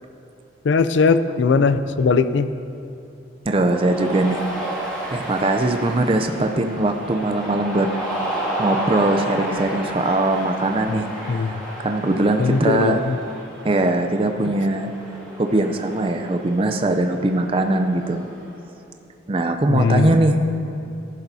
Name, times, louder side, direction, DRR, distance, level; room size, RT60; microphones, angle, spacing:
voice 1, 0.6-2.5 10.9-11.0 11.3-11.6 12.4-13.2 19.7-20.1, left 4 dB, 75° left, 12 dB, 0.4 m, -19 dB
voice 2, 3.5-4.4 5.1-7.9 8.6-13.0 13.6-14.9 15.4-18.3 19.3-20.4, right 2 dB, 30° right, 6 dB, 0.4 m, -21 dB
Cheering, 3.6-18.5, right 1 dB, 5° left, 2.1 m, -32 dB
13.5 x 11.5 x 2.7 m, 2.8 s
head